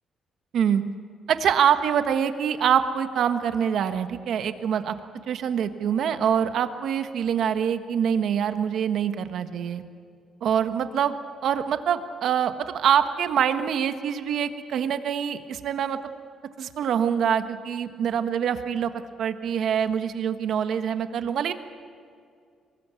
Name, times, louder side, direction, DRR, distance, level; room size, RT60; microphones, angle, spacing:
voice 1, 1.3-4.9 5.3-9.8 10.4-11.1 11.4-16.0 16.6-18.9 19.2-21.5, right 8 dB, 65° right, 9 dB, 1.4 m, -25 dB
23.5 x 20.0 x 8.4 m, 2.3 s
cardioid pair, 120°, 0 cm